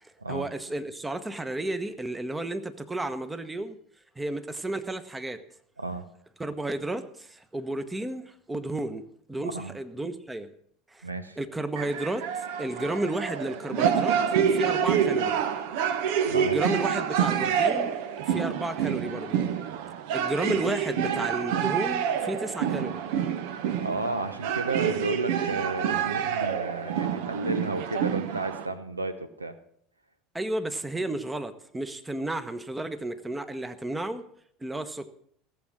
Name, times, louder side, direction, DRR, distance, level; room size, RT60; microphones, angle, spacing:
voice 1, 0.0-3.8 4.2-5.4 6.4-9.0 9.3-10.5 10.9-11.1 11.4-12.2 12.6-14.2 14.5-15.4 16.3-17.9 18.2-19.4 20.1-23.0 30.3-34.2 34.6-35.1, right 2 dB, 10° right, 11 dB, 1.1 m, -32 dB
voice 2, 9.4-9.8 11.0-11.4 16.3-16.6 23.8-29.5, right 2 dB, 90° right, 12 dB, 0.7 m, -32 dB
sound 1, 11.8-28.7, right 8 dB, 60° right, 0.9 m, -27 dB
16.5 x 7.4 x 6.1 m, 0.65 s
figure-of-eight pair, 75°, 0 cm